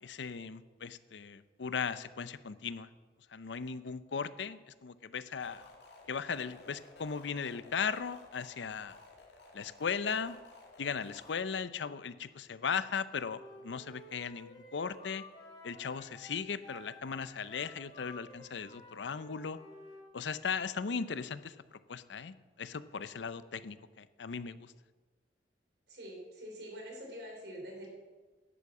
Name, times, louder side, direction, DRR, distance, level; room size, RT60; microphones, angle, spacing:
voice 1, 0.0-2.9 3.3-5.6 6.1-9.0 9.5-10.4 10.8-15.2 15.6-19.6 20.1-24.7, left 6 dB, 85° left, 15 dB, 0.6 m, -37 dB
sound 1, 5.3-11.3, left 3 dB, 70° left, 2.5 m, -55 dB
Wind instrument woodwind instrument, 13.3-20.1, left 1 dB, 30° left, 3.3 m, -53 dB
voice 2, 25.9-27.9, equal, 65° right, 0 dB, 3.7 m, -45 dB
11.0 x 8.5 x 7.2 m, 1.3 s
head